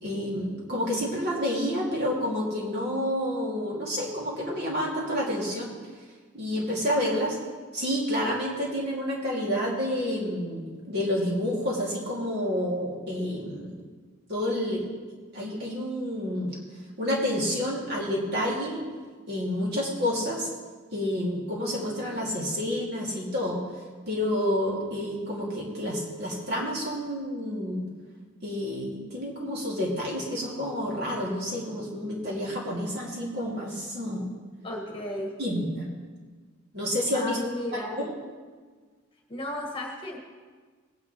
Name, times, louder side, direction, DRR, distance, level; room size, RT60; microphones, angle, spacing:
voice 1, 0.0-5.7 6.3-7.4 7.7-13.8 14.3-14.8 15.3-16.5 17.0-18.8 19.3-20.5 20.9-23.6 24.1-27.8 28.4-34.2 35.4-35.9 36.7-37.4 37.7-38.1, equal, 50° right, -4 dB, 2.3 m, -29 dB
voice 2, 34.6-35.4 37.1-37.9 39.3-40.2, left 1 dB, 25° left, -1 dB, 1.6 m, -34 dB
18.5 x 9.7 x 3.1 m, 1.5 s
head